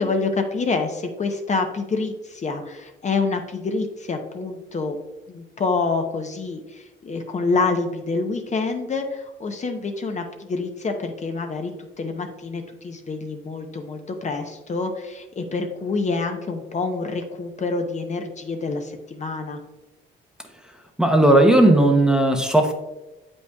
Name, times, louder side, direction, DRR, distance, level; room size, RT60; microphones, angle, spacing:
voice 1, 0.0-5.0 5.3-19.6, left 4 dB, 35° left, 5 dB, 0.7 m, -27 dB
voice 2, 21.0-22.7, right 1 dB, 5° right, 4 dB, 0.7 m, -16 dB
7.9 x 5.3 x 2.3 m, 1.1 s
cardioid pair, 90°, 20 cm